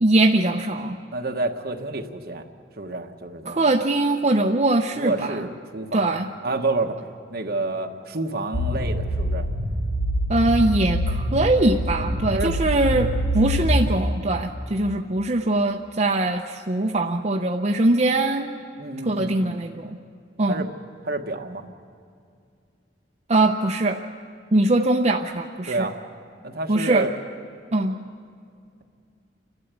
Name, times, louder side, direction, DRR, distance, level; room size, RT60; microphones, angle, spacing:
voice 1, 0.0-1.0 3.5-5.5 5.9-6.3 10.3-18.5 19.0-20.0 20.4-20.7 23.3-24.0 24.5-25.9 26.7-27.1 27.7-28.0, right 2 dB, 40° right, 2 dB, 0.7 m, -22 dB
voice 2, 1.1-2.4 2.8-3.7 4.9-6.2 6.4-6.9 7.3-9.5 12.3-12.6 18.8-19.6 20.5-20.7 21.0-21.6 25.7-26.0 26.4-27.1, right 2 dB, 60° right, 4 dB, 1.3 m, -29 dB
sound 1, 8.5-13.9, equal, 80° left, 1.4 m, -25 dB
29.0 x 12.5 x 8.3 m, 2.4 s
head